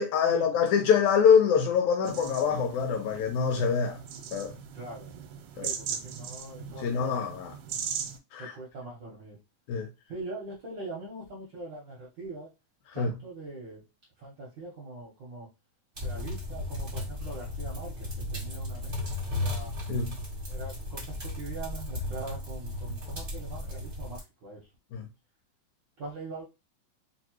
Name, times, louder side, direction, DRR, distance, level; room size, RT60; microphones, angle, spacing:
voice 1, 0.0-4.0 4.3-4.5 5.6-5.7 6.8-7.5 8.3-8.5 9.7-9.9 13.0-13.1 19.9-20.1 24.9-25.0, left 6 dB, 80° left, 2.0 m, -24 dB
sound 1, 2.0-8.2, right 7 dB, 85° right, 2.0 m, -39 dB
voice 2, 4.7-5.1 5.6-7.3 8.4-9.4 10.1-12.5 12.9-13.8 14.2-15.5 16.0-19.7 20.5-24.7 26.0-26.4, right 2 dB, 60° right, 1.2 m, -42 dB
sound 2, 16.0-24.2, left 1 dB, 35° right, 0.8 m, -35 dB
4.6 x 2.5 x 3.0 m
omnidirectional pair, 3.5 m